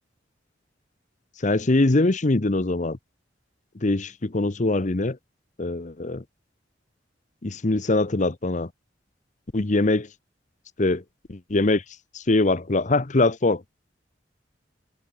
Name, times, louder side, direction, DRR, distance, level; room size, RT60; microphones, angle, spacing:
voice 1, 1.4-3.0 3.8-5.2 5.6-6.2 7.4-8.7 9.5-10.1 10.8-11.0 11.3-11.8 12.1-13.6, left 2 dB, 40° left, 0.9 m, -22 dB
head